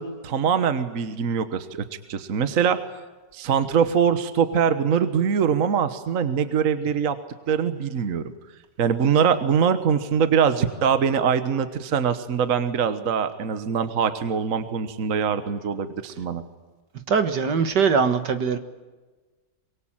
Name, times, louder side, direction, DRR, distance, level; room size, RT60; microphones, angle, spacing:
voice 1, 0.0-2.8 3.3-7.2 7.5-8.2 8.8-16.4, right 7 dB, 50° right, 11 dB, 1.5 m, -23 dB
voice 2, 17.1-18.6, right 5 dB, 65° right, 9 dB, 2.1 m, -21 dB
24.5 x 23.0 x 8.9 m, 1.3 s
omnidirectional pair, 2.0 m